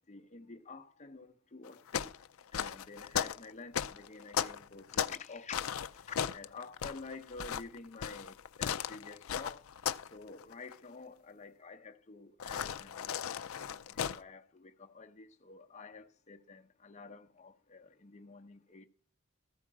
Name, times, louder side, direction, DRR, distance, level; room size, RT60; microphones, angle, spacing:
voice 1, 0.1-2.1 2.5-5.6 6.1-9.6 10.1-13.4 13.7-18.8, left 4 dB, 35° left, 0.7 m, -49 dB
sound 1, 1.6-5.3 5.5-10.1 10.4-10.7 12.4-14.2, left 8 dB, 75° left, 0.5 m, -36 dB
14.0 x 5.0 x 7.3 m
head